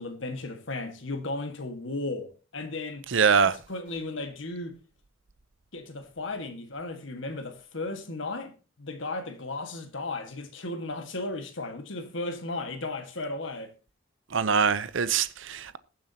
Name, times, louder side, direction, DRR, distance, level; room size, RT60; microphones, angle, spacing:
voice 1, 0.0-4.8 5.7-13.7, left 2 dB, 65° left, 1.7 m, -35 dB
voice 2, 3.1-3.5 14.3-15.8, right 6 dB, 65° right, 0.7 m, -23 dB
21.0 x 7.2 x 2.8 m
head